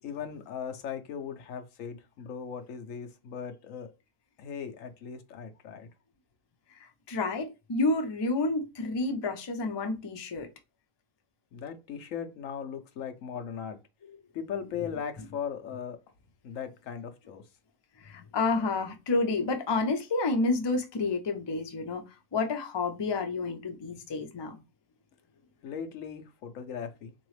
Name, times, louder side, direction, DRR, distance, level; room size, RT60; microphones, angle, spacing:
voice 1, 0.0-3.9 4.4-5.9 11.5-13.8 14.3-16.0 16.4-17.4 25.6-27.1, left 7 dB, 90° left, 1.1 m, -38 dB
voice 2, 6.7-10.5 14.0-14.2 15.2-15.3 18.0-22.0 22.3-24.6, left 3 dB, 35° left, 0.4 m, -30 dB
3.9 x 2.9 x 3.2 m
omnidirectional pair, 1.3 m